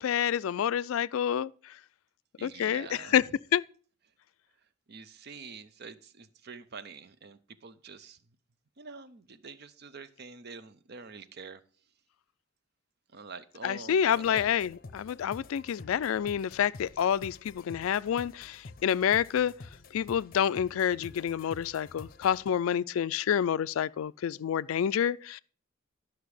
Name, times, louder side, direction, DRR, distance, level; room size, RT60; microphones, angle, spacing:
voice 1, 0.0-1.5 2.4-3.2 3.5-3.6 13.6-19.5 19.9-25.4, left 9 dB, 85° left, 0.3 m, -28 dB
voice 2, 2.4-3.2 4.9-8.2 8.8-11.6 13.1-14.0 14.3-14.5, right 4 dB, 50° right, 0.6 m, -46 dB
sound 1, 14.1-22.5, left 3 dB, 45° left, 0.6 m, -49 dB
11.5 x 5.9 x 4.8 m
head